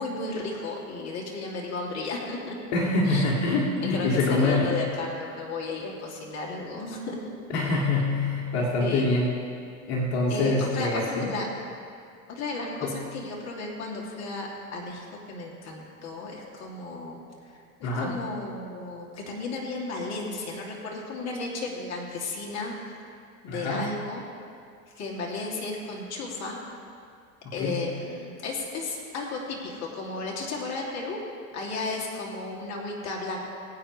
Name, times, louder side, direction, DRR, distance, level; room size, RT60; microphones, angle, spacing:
voice 1, 0.0-2.6 3.0-3.2 3.7-7.3 8.8-9.2 10.3-11.5 12.3-22.7 23.1-23.2 23.4-24.2 24.9-26.6 27.5-31.2 31.5-33.4, left 3 dB, 40° left, -2 dB, 2.8 m, -34 dB
voice 2, 2.7-4.7 7.5-9.3 9.9-11.3 12.8-12.9 17.8-18.1 23.5-23.9 27.4-27.8, left 2 dB, 55° left, -4 dB, 2.4 m, -25 dB
22.0 x 9.1 x 3.3 m, 2.3 s
supercardioid pair, 110°, 41 cm